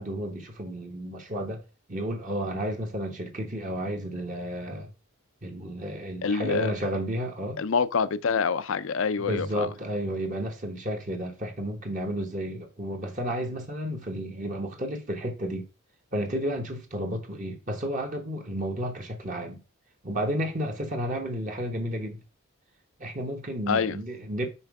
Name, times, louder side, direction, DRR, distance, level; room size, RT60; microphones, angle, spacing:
voice 1, 0.0-1.6 1.9-4.9 5.4-7.6 9.2-15.7 16.1-19.6 20.0-22.2 23.0-24.5, equal, 35° right, 1.1 m, -32 dB
voice 2, 6.2-6.7 7.6-9.7 23.7-24.0, left 5 dB, 65° left, 0.5 m, -26 dB
5.8 x 4.5 x 4.7 m
head